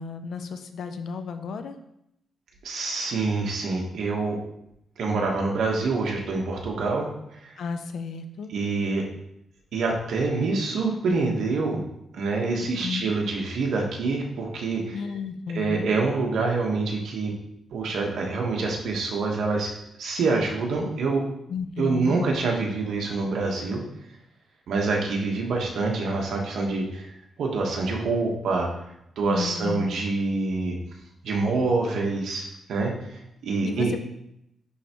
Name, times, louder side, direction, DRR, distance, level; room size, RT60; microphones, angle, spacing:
voice 1, 0.0-1.8 7.6-8.5 12.8-13.1 14.9-15.9 21.5-22.2 29.2-29.9 33.6-34.0, left 5 dB, 65° left, 9 dB, 0.5 m, -33 dB
voice 2, 2.6-4.4 5.0-7.1 7.4-7.5 8.5-9.0 9.7-11.8 12.1-15.0 15.5-17.3 17.7-19.7 20.0-21.2 21.8-23.8 24.7-27.1 27.4-28.7 29.2-30.8 31.2-33.9, right 3 dB, 75° right, 0 dB, 1.2 m, -26 dB
9.9 x 3.4 x 3.0 m, 0.80 s
wide cardioid pair, 135°, 0 cm